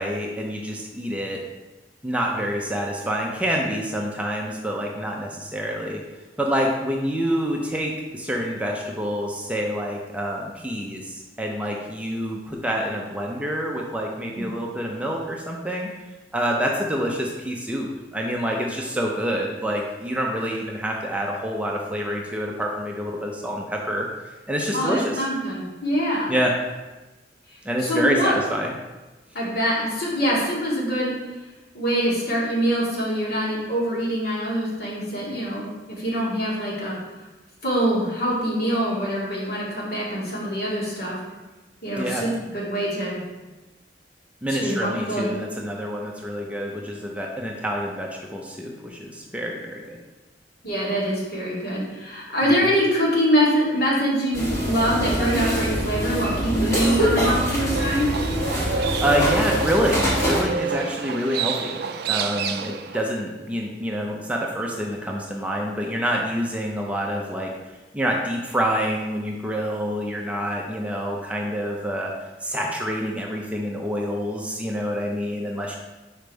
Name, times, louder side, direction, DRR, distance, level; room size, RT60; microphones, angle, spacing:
voice 1, 0.0-1.4 2.0-6.0 6.4-15.9 16.3-24.1 24.5-25.2 26.3-26.5 27.6-28.7 42.0-42.2 44.4-50.0 52.4-52.5 58.7-61.7 62.1-67.5 67.9-72.1 72.4-75.7, equal, 5° right, -1 dB, 0.6 m, -27 dB
voice 2, 24.7-26.3 27.8-28.3 29.3-31.1 31.7-37.0 37.6-41.2 41.8-43.2 44.5-45.4 50.6-58.1, equal, 60° left, -5 dB, 2.1 m, -24 dB
sound 1, 54.3-60.4, equal, 15° left, 1.6 m, -24 dB
Livestock farm animals working animals, 57.7-63.1, right 5 dB, 60° right, 0.4 m, -29 dB
5.1 x 4.5 x 5.1 m, 1.1 s
head